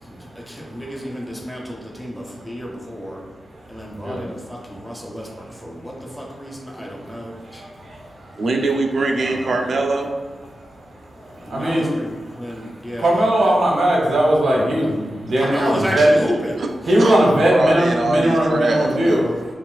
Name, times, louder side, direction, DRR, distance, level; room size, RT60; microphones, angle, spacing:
voice 1, 0.0-3.2 3.7-7.6 9.2-9.8 11.4-13.6 15.4-16.6, equal, ahead, -2 dB, 0.5 m, -31 dB
voice 2, 7.5-8.0 11.4-11.9 13.0-16.1 16.9-19.4, right 1 dB, 85° right, -3 dB, 1.0 m, -19 dB
voice 3, 8.4-10.1 17.0-19.3, right 2 dB, 65° right, 2 dB, 0.5 m, -22 dB
5.8 x 2.4 x 2.4 m, 1.4 s
wide cardioid pair, 150°, 0 cm